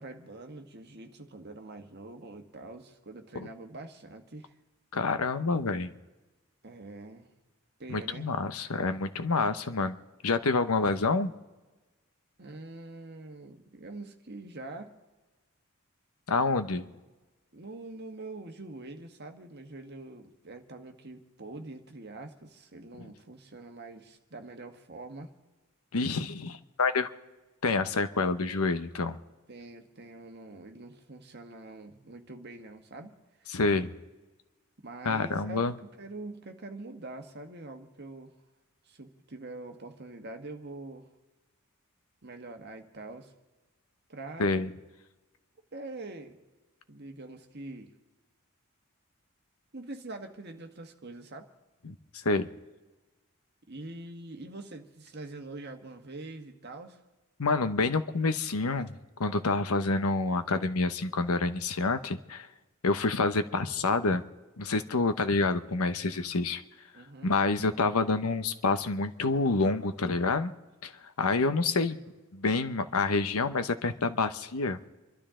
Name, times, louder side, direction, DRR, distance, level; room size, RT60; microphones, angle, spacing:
voice 1, 0.0-4.5 6.6-7.3 7.8-8.3 12.4-14.9 16.7-16.9 17.5-25.3 29.5-33.1 33.4-33.5 34.8-38.3 38.8-41.1 42.2-43.3 44.1-44.7 45.7-46.4 46.9-47.9 49.7-51.5 53.7-57.0 66.9-67.3, right 2 dB, 50° right, 5 dB, 1.5 m, -44 dB
voice 2, 4.9-5.9 7.9-10.0 10.2-11.3 16.3-16.8 25.9-27.1 27.6-29.2 33.5-33.9 35.0-35.7 44.4-44.7 51.8-51.9 52.2-52.5 57.4-58.9 59.2-62.5 62.8-64.2 64.6-66.6 67.2-70.5 70.8-70.9 71.2-72.0 72.3-74.8, left 3 dB, 85° left, 11 dB, 1.0 m, -27 dB
29.0 x 12.0 x 3.8 m, 1.2 s
head